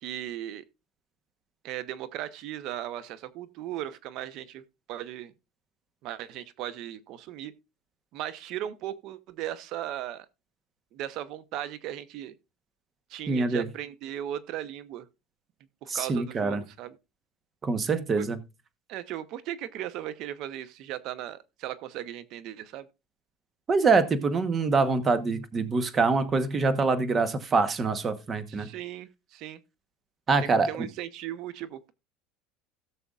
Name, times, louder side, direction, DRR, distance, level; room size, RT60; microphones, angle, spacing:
voice 1, 0.0-0.6 1.6-4.6 4.9-5.3 6.0-7.5 8.1-10.3 10.9-12.3 13.1-15.1 15.8-17.0 18.2-18.3 18.9-22.9 28.5-29.6 30.7-31.9, right 12 dB, 55° right, 0.9 m, -37 dB
voice 2, 13.3-13.7 15.9-16.6 17.6-18.4 23.7-28.7 30.3-30.9, right 4 dB, 25° right, 1.1 m, -25 dB
16.5 x 6.8 x 2.4 m
cardioid pair, 140°, 0 cm